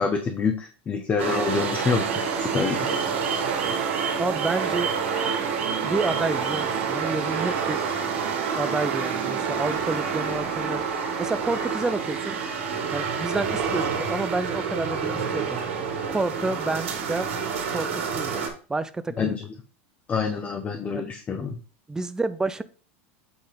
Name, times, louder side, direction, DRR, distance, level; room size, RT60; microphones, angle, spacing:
voice 1, 0.0-2.1 2.4-2.9 19.2-19.4 20.1-21.6, left 5 dB, 25° left, 5 dB, 0.9 m, -26 dB
sound 1, 1.2-18.5, right 5 dB, 85° right, 2.0 m, -28 dB
sound 2, 1.7-12.6, right 12 dB, 55° right, 0.8 m, -36 dB
voice 2, 4.2-4.9 5.8-7.8 8.6-10.8 11.2-12.4 12.9-15.7 16.1-17.3 17.6-18.4 18.7-19.4 20.9-21.1 21.9-22.6, right 3 dB, 10° right, 12 dB, 0.5 m, -29 dB
8.1 x 3.5 x 5.1 m, 0.38 s
supercardioid pair, 120°, 7 cm